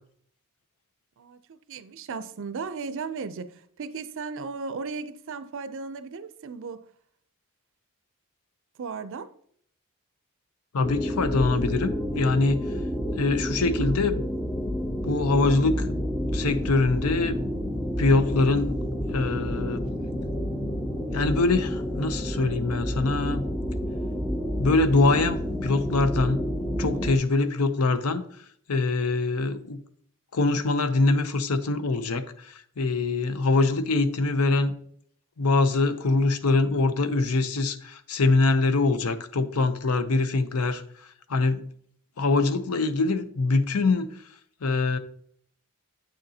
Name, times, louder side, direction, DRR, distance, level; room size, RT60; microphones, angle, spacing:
voice 1, 1.2-6.9 8.8-9.3, right 4 dB, 60° right, 0.5 m, -36 dB
voice 2, 10.7-12.6 13.1-14.2 15.0-16.0 16.3-17.4 18.0-18.8 19.1-19.9 21.1-23.5 24.6-26.4 26.8-28.2 28.7-29.8 30.3-34.7 35.4-40.8 41.3-41.6 42.2-44.1 44.6-45.0, left 3 dB, 75° left, 0.6 m, -24 dB
sound 1, 10.8-27.2, equal, 5° left, 0.5 m, -29 dB
8.3 x 6.4 x 2.8 m
head